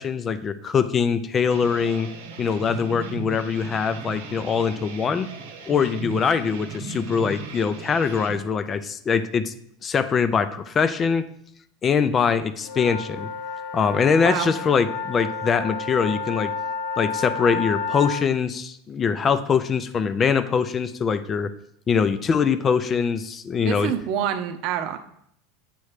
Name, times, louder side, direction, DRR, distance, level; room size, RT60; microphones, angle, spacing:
voice 1, 0.0-2.1 2.4-5.3 5.7-9.5 9.8-11.2 11.8-13.3 13.7-16.5 17.0-21.5 21.9-23.9, left 6 dB, 30° left, 12 dB, 0.4 m, -23 dB
sound 1, 1.5-8.4, right 5 dB, 85° right, 1.0 m, -37 dB
sound 2, 12.6-18.2, left 5 dB, 80° left, 0.7 m, -31 dB
voice 2, 14.1-14.5 23.6-25.0, right 9 dB, 60° right, 8 dB, 0.7 m, -27 dB
8.3 x 3.1 x 4.9 m, 0.72 s
supercardioid pair, 115°, 0 cm